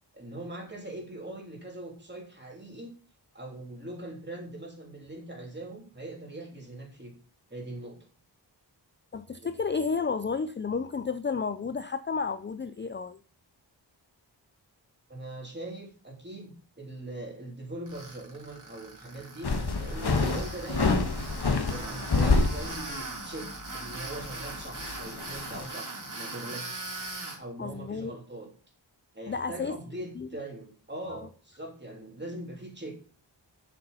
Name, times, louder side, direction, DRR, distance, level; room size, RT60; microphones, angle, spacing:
voice 1, 0.1-2.9 3.3-7.2 7.5-8.0 9.4-9.6 15.1-19.5 19.8-21.0 21.7-26.9 27.4-28.5 29.1-33.0, right 1 dB, 25° right, 3.2 m, -41 dB
voice 2, 9.1-13.2 27.6-28.1 29.3-29.8 30.2-30.3 31.1-31.3, left 5 dB, 25° left, 0.4 m, -32 dB
Tools, 17.9-27.4, right 2 dB, 45° right, 3.2 m, -40 dB
sound 1, 19.4-23.1 23.4-23.5 24.1-25.7, left 3 dB, 60° left, 1.5 m, -27 dB
7.7 x 6.9 x 5.5 m
wide cardioid pair, 80°, 44 cm